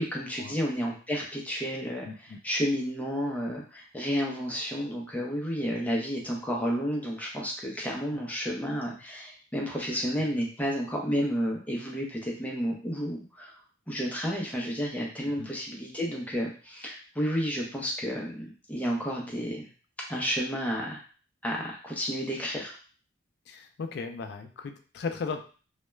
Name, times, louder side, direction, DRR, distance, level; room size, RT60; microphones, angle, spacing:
voice 1, 0.0-13.6 13.9-19.7 20.1-21.0 21.4-22.8, equal, 10° left, -2 dB, 0.5 m, -31 dB
voice 2, 2.0-2.4 8.1-8.2 9.9-10.0 15.2-15.5 23.5-25.4, left 4 dB, 55° left, 7 dB, 0.3 m, -37 dB
2.3 x 2.1 x 3.1 m, 0.38 s
head